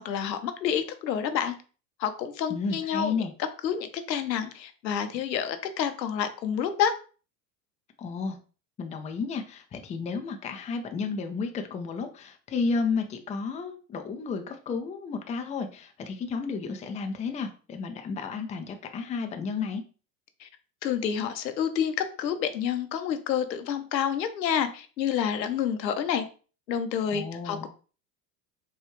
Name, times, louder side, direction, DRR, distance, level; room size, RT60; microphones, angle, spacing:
voice 1, 0.0-1.5 2.0-3.2 3.6-6.9 20.4-20.5 20.8-26.2 26.7-27.7, left 8 dB, 90° left, 9 dB, 0.7 m, -28 dB
voice 2, 2.5-3.3 8.0-8.4 8.8-19.8 27.1-27.7, left 4 dB, 15° left, 6 dB, 0.4 m, -32 dB
4.2 x 2.3 x 3.1 m, 0.37 s
hypercardioid pair, 85°, 49 cm